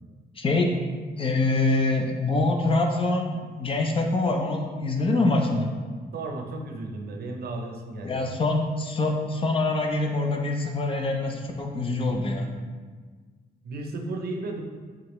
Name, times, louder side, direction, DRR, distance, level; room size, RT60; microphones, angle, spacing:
voice 1, 0.4-0.8 1.2-5.7 8.0-12.6, left 2 dB, 30° left, 2 dB, 0.4 m, -25 dB
voice 2, 6.1-8.2 13.6-14.6, right 2 dB, 65° right, 2 dB, 0.6 m, -34 dB
4.9 x 3.5 x 3.0 m, 1.5 s
wide cardioid pair, 160°, 17 cm